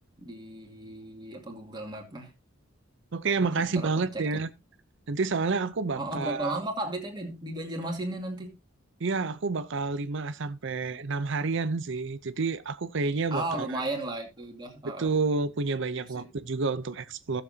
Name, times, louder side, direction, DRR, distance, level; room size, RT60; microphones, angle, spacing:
voice 1, 0.2-2.3 3.4-4.3 6.0-8.5 13.3-15.1 16.1-16.3, right 2 dB, 25° right, 2.4 m, -35 dB
voice 2, 3.1-4.5 5.1-6.6 9.0-13.8 15.0-17.4, right 4 dB, 65° right, 0.6 m, -29 dB
16.0 x 7.1 x 2.8 m
head